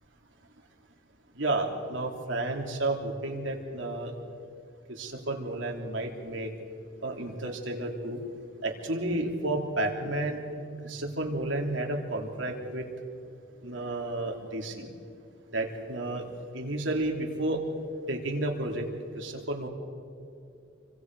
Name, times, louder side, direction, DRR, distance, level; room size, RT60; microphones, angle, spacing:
voice 1, 1.4-4.1 4.9-6.5 7.0-8.2 8.6-10.4 10.8-12.8 13.6-14.9 15.5-16.2 16.5-17.6 18.1-18.8 19.1-19.7, right 2 dB, 75° right, 1 dB, 3.1 m, -31 dB
29.0 x 25.0 x 4.8 m, 2.5 s
head